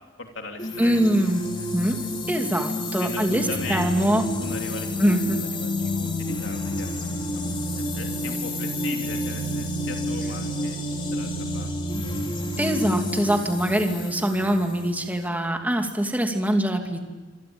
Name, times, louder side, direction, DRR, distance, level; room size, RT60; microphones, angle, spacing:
voice 1, 0.2-2.1 3.0-4.9 5.2-7.4 7.8-10.8 11.1-11.7, left 3 dB, 80° left, 2 dB, 3.1 m, -39 dB
sound 1, 0.6-15.3, left 1 dB, 30° left, 3.6 m, -29 dB
voice 2, 0.8-1.4 1.7-4.3 5.0-5.4 12.6-17.0, right 1 dB, 10° right, 3 dB, 2.6 m, -23 dB
27.0 x 25.0 x 8.8 m, 1.2 s
head